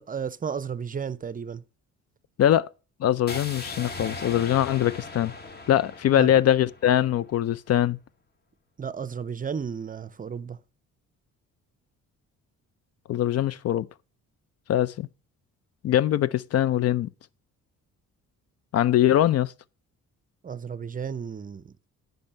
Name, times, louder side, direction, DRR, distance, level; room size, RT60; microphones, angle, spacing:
voice 1, 0.0-1.6 6.1-6.4 8.8-10.6 20.4-21.7, right 7 dB, 30° right, 0.6 m, -33 dB
voice 2, 2.4-2.7 3.0-5.3 5.7-8.0 13.1-13.9 14.7-15.1 15.8-17.1 18.7-19.5, left 11 dB, 55° left, 0.5 m, -22 dB
sound 1, 3.3-7.3, left 3 dB, 35° left, 1.4 m, -39 dB
10.5 x 5.4 x 5.5 m
cardioid pair, 90°, 30 cm